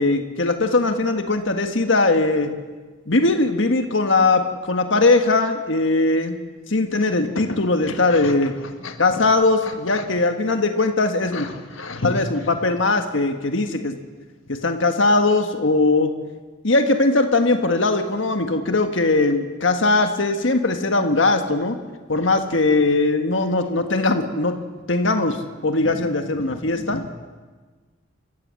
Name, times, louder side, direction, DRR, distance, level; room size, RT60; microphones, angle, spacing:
voice 1, 0.0-2.5 3.1-6.4 6.7-8.5 9.0-11.5 12.0-13.9 14.5-16.1 16.6-21.8 22.1-24.5 24.9-25.4 25.6-27.0, left 2 dB, 70° left, 6 dB, 1.6 m, -20 dB
voice 2, 11.3-12.1 26.9-27.1, left 3 dB, 90° left, 6 dB, 1.5 m, -30 dB
28.0 x 15.0 x 7.6 m, 1.4 s
head